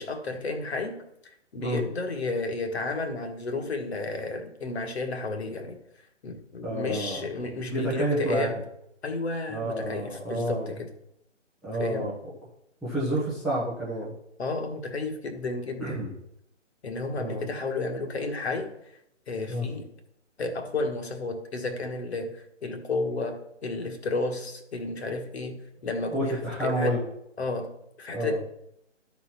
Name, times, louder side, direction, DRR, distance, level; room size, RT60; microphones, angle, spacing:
voice 1, 0.0-5.8 6.2-8.6 9.0-10.9 11.8-12.1 14.4-16.0 16.8-18.7 19.3-19.9 20.4-27.0 27.4-28.4, left 3 dB, 60° left, 5 dB, 1.6 m, -32 dB
voice 2, 6.6-7.2 7.7-8.5 9.5-10.7 11.6-12.1 12.8-14.1 15.8-16.1 17.2-17.4 19.5-19.7 26.1-27.0 28.1-28.4, right 1 dB, ahead, -9 dB, 0.6 m, -29 dB
12.5 x 4.3 x 4.2 m, 0.78 s
figure-of-eight pair, 140°, 37 cm